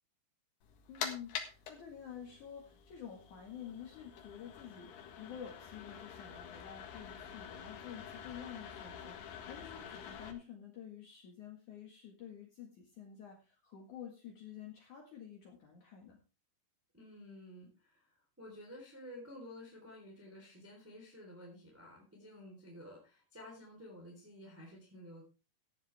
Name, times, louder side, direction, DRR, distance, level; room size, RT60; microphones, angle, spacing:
sound 1, 0.6-10.3, left 7 dB, 75° left, 3.7 m, -47 dB
voice 1, 0.9-4.9 5.2-16.2, left 8 dB, 55° left, 2 dB, 2.8 m, -49 dB
voice 2, 16.9-25.2, left 1 dB, 5° right, -2 dB, 3.1 m, -52 dB
14.5 x 10.5 x 3.4 m, 0.30 s
omnidirectional pair, 4.7 m